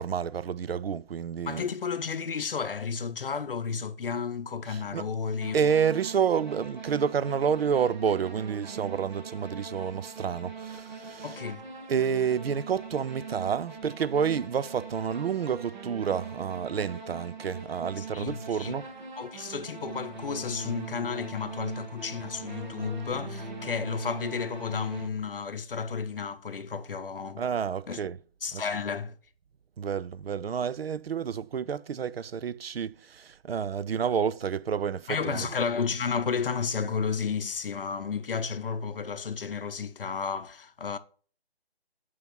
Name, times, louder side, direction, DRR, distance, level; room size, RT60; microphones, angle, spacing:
voice 1, 0.0-1.7 4.7-5.1 5.5-11.4 11.9-18.9 27.4-28.2 28.5-28.6 29.8-35.5, right 7 dB, 70° right, 0.5 m, -29 dB
voice 2, 1.4-5.6 11.2-11.6 18.0-18.7 19.2-27.4 27.9-28.0 28.4-29.2 35.1-41.0, left 5 dB, 60° left, 0.6 m, -32 dB
sound 1, 5.4-25.1, right 3 dB, 50° right, 1.3 m, -41 dB
5.7 x 4.7 x 5.9 m
figure-of-eight pair, 170°, 31 cm